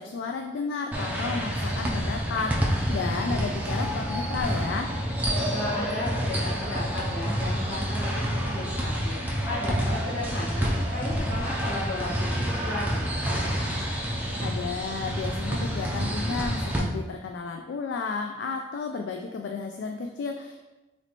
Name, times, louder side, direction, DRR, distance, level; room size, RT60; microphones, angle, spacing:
voice 1, 0.0-4.9 14.4-20.6, left 4 dB, 85° left, 4 dB, 0.3 m, -32 dB
sound 1, 0.9-16.8, equal, 10° right, 0.5 m, -28 dB
voice 2, 5.5-9.2 9.4-13.1, left 1 dB, 70° left, -6 dB, 1.4 m, -34 dB
4.0 x 3.1 x 2.9 m, 1.1 s
head